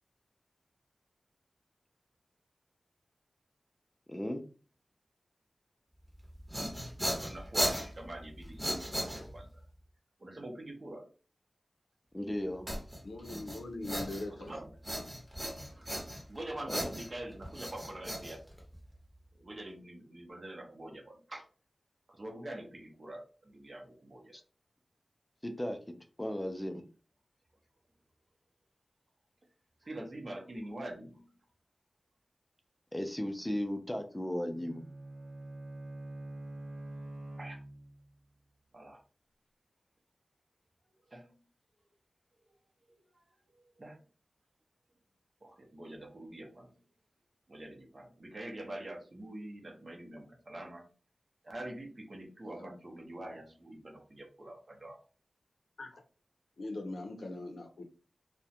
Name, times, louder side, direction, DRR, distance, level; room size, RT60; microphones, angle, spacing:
voice 1, 4.1-4.4 12.1-12.7 16.7-16.9 24.3-24.4 25.4-25.8 26.2-26.8 32.9-34.8, left 1 dB, 10° left, 5 dB, 0.4 m, -35 dB
sound 1, 6.2-9.6 12.7-14.5 14.8-16.4 16.7-18.9, equal, 10° right, 0.8 m, -37 dB
voice 2, 7.2-9.6 10.2-11.1 14.4-14.8 15.4-16.0 16.3-18.5 19.3-21.5 22.1-24.4 29.8-31.3 37.4-37.6 38.7-39.0 41.1-41.4 42.4-42.5 42.8-43.2 43.5-44.0 45.4-46.8 47.5-50.9 51.4-55.0, right 1 dB, 40° right, 2 dB, 0.7 m, -45 dB
voice 3, 13.0-14.5 52.5-52.8 55.8-56.0 56.6-57.8, left 2 dB, 80° left, 4 dB, 0.5 m, -41 dB
Bowed string instrument, 34.5-38.1, right 1 dB, 85° right, 0.8 m, -45 dB
2.4 x 2.1 x 2.7 m, 0.36 s
wide cardioid pair, 90°, 0 cm